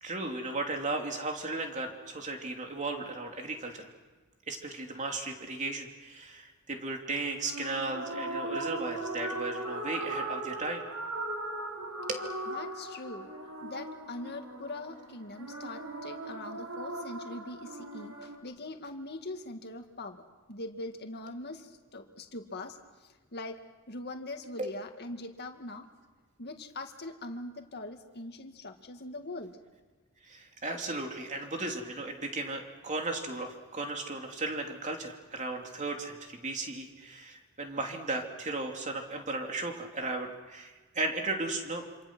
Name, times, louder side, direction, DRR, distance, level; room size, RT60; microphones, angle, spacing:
voice 1, 0.0-3.9 4.5-10.8 12.1-12.3 24.6-24.7 30.2-41.8, right 2 dB, 35° right, 2 dB, 3.0 m, -35 dB
sound 1, 7.4-18.4, right 2 dB, 90° right, 4.6 m, -38 dB
voice 2, 12.5-13.3 13.6-20.2 20.5-22.8 23.0-23.6 23.9-25.9 26.4-29.6, left 2 dB, 50° left, 5 dB, 2.1 m, -42 dB
27.0 x 27.0 x 6.2 m, 1.3 s
head